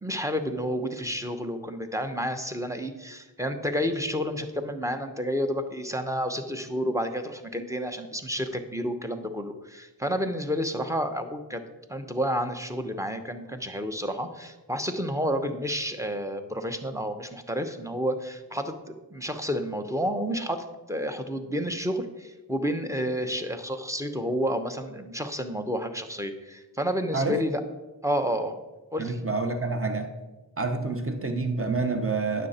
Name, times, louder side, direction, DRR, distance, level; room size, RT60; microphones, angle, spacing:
voice 1, 0.0-11.6 11.9-27.6 28.0-28.6 28.9-29.2, equal, 5° right, 8 dB, 1.0 m, -30 dB
voice 2, 29.0-30.1 30.6-32.5, right 3 dB, 30° right, 6 dB, 1.2 m, -28 dB
9.6 x 6.6 x 4.3 m, 1.1 s
cardioid pair, 40°, 45 cm